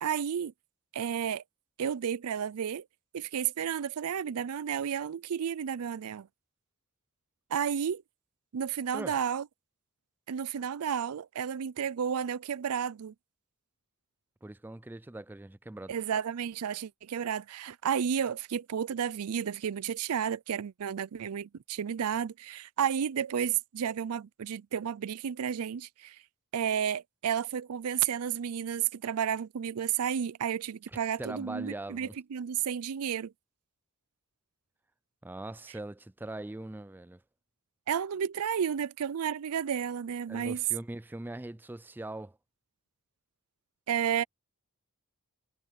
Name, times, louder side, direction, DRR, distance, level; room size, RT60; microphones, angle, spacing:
voice 1, 0.0-0.5 0.9-1.4 1.8-2.8 3.1-6.3 7.5-8.0 8.5-9.4 10.3-13.1 15.9-26.2 26.5-33.3 37.9-40.6 43.9-44.2, right 8 dB, 80° right, 0.4 m, -32 dB
voice 2, 14.4-15.9 30.9-32.1 35.2-37.2 40.3-42.4, right 2 dB, 10° right, 0.3 m, -41 dB
head